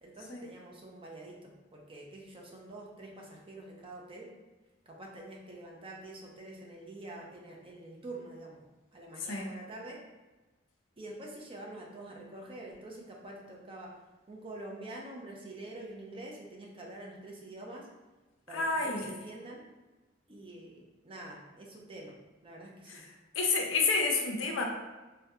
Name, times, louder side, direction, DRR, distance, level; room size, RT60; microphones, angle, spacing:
voice 1, 0.0-4.3 4.9-8.6 8.9-10.0 11.0-13.9 14.3-17.9 18.5-19.6 20.3-23.0, right 2 dB, 30° right, -1 dB, 0.5 m, -46 dB
voice 2, 18.5-19.1 22.9-23.0 23.4-24.6, left 4 dB, 80° left, 1 dB, 0.5 m, -29 dB
3.5 x 2.2 x 2.7 m, 1.2 s
head